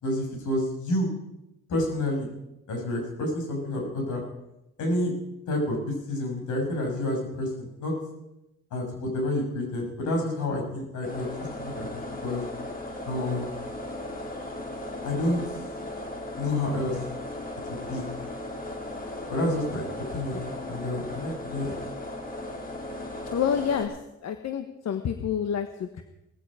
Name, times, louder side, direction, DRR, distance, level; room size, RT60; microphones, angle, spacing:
voice 1, 0.0-1.1 1.7-2.3 2.7-4.2 4.8-5.1 5.5-7.9 8.7-11.3 11.6-12.4 13.1-13.4 15.0-15.4 16.4-17.0 17.7-18.1 19.3-21.8, left 1 dB, 80° left, 1 dB, 6.3 m, -29 dB
sound 1, 11.0-23.8, left 1 dB, 30° left, 3.7 m, -36 dB
voice 2, 23.3-24.0 24.2-26.0, left 8 dB, 60° left, 8 dB, 1.2 m, -28 dB
18.0 x 15.0 x 5.0 m, 0.92 s
cardioid pair, 90°, 30 cm